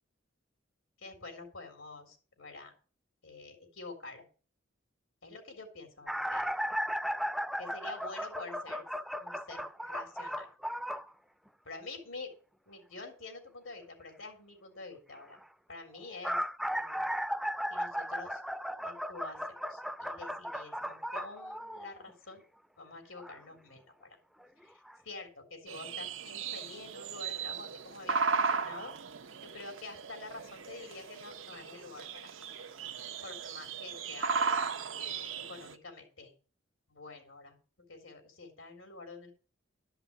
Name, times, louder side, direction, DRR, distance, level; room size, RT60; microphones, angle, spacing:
voice 1, 1.0-2.7 3.2-4.2 5.2-6.5 7.6-8.8 9.2-10.5 11.6-12.3 12.7-15.4 15.7-16.4 16.8-17.1 17.7-18.4 18.8-22.4 22.8-24.2 24.6-28.9 29.4-32.3 33.2-34.4 34.9-36.3 36.9-37.6 37.9-39.3, left 3 dB, 85° left, 5 dB, 3.4 m, -47 dB
sound 1, 6.1-11.1 15.9-22.1 23.2-23.3 24.4-24.5 24.9-25.0, equal, ahead, 0.6 m, -36 dB
sound 2, 25.7-35.7, right 5 dB, 90° right, 1.0 m, -36 dB
12.0 x 5.6 x 8.7 m, 0.38 s
head